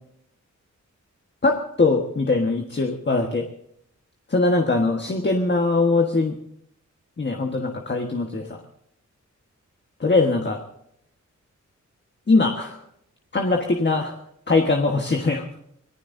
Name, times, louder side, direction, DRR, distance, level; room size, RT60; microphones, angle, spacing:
voice 1, 1.4-3.4 4.3-6.4 7.2-8.6 10.0-10.6 12.3-12.8 13.3-14.1 14.5-15.6, left 3 dB, 35° left, 3 dB, 1.4 m, -21 dB
25.0 x 19.0 x 2.7 m, 0.74 s
wide cardioid pair, 105°, 30 cm